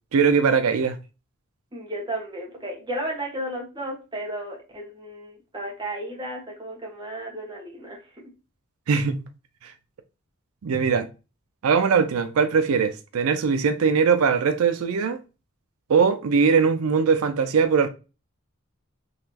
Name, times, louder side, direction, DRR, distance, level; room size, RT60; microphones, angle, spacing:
voice 1, 0.1-1.0 8.9-9.2 9.6-9.7 10.6-11.1 11.6-15.2 15.9-17.9, right 5 dB, 90° right, 0.4 m, -21 dB
voice 2, 1.7-8.3, right 1 dB, 20° right, 1.3 m, -34 dB
4.0 x 2.9 x 2.8 m
head